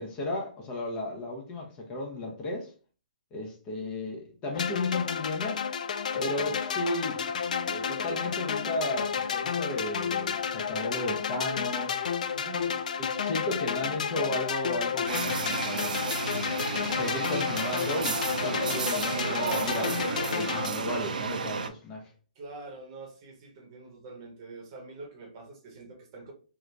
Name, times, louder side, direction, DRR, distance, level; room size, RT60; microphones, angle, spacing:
voice 1, 0.0-2.7 3.3-5.6 6.2-7.2 7.6-12.0 13.0-15.9 16.9-22.1, left 2 dB, 20° left, 0.6 m, -34 dB
sound 1, 4.5-20.7, left 7 dB, 65° left, 0.4 m, -31 dB
voice 2, 6.1-6.6 12.3-12.9 22.4-26.3, right 3 dB, 35° right, 0.8 m, -46 dB
sound 2, 15.1-21.7, right 5 dB, 75° right, 0.5 m, -32 dB
2.8 x 2.5 x 3.2 m
hypercardioid pair, 155°, 4 cm